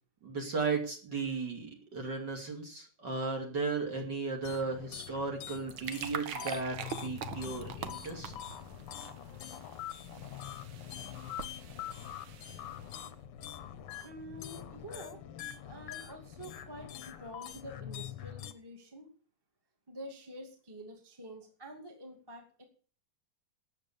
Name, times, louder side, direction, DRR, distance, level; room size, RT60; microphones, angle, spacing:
voice 1, 0.2-8.3, right 4 dB, 35° right, 2 dB, 2.8 m, -35 dB
sound 1, 4.4-18.5, left 11 dB, 65° left, 1.6 m, -44 dB
sound 2, 5.4-13.0, right 7 dB, 60° right, 1.4 m, -44 dB
voice 2, 14.0-15.2 15.6-19.1 19.9-22.6, equal, 10° right, 3 dB, 1.9 m, -48 dB
13.0 x 8.3 x 7.0 m, 0.41 s
omnidirectional pair, 3.4 m